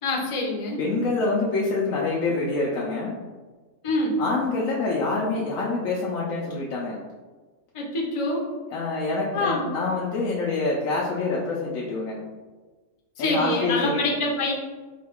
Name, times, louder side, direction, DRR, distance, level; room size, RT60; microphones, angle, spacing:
voice 1, 0.0-0.8 3.8-4.2 7.7-8.4 9.3-9.7 13.2-14.5, left 2 dB, 35° left, -2 dB, 0.5 m, -25 dB
voice 2, 0.8-3.2 4.2-7.0 8.7-12.2 13.2-14.0, left 3 dB, 80° left, -4 dB, 1.0 m, -26 dB
3.8 x 2.2 x 3.5 m, 1.3 s
omnidirectional pair, 1.4 m